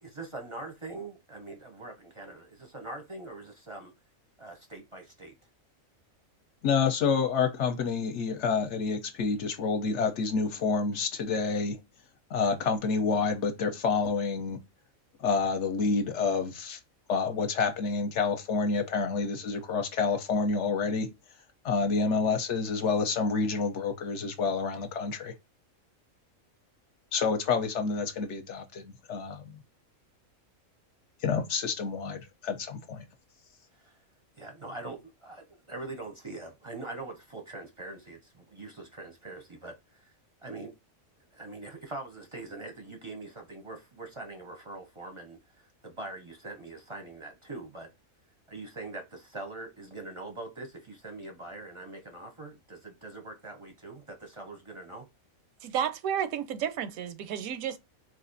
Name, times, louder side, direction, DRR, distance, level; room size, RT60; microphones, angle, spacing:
voice 1, 0.0-3.9 4.4-5.3 33.7-34.0 34.4-40.1 40.4-40.7 41.3-47.9 48.5-55.1, right 2 dB, 35° right, 0.5 m, -43 dB
voice 2, 6.6-11.8 12.3-14.6 15.2-16.8 17.1-21.1 21.6-25.3 27.1-29.6 31.2-33.0, left 5 dB, 65° left, 0.9 m, -28 dB
voice 3, 55.6-57.8, right 9 dB, 85° right, 1.0 m, -31 dB
4.0 x 2.5 x 2.5 m
omnidirectional pair, 1.4 m